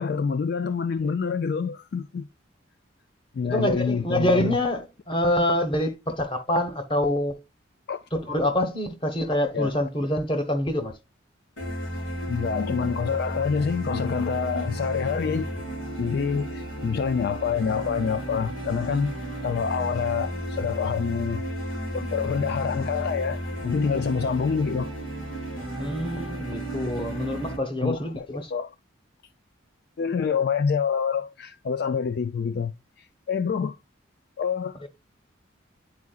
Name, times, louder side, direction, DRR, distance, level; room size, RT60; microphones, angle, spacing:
voice 1, 0.0-2.2 3.3-4.6 7.9-8.0 9.5-9.7 12.3-15.5 16.0-19.1 19.4-21.4 21.9-24.9 27.8-28.7 30.0-33.8 34.4-34.9, left 6 dB, 50° left, 0.3 m, -27 dB
voice 2, 3.4-7.4 8.1-10.9 25.8-28.5 34.8-34.9, left 1 dB, 25° left, 1.1 m, -26 dB
sound 1, 11.6-27.6, equal, 90° left, 3.9 m, -33 dB
9.6 x 4.6 x 2.4 m
head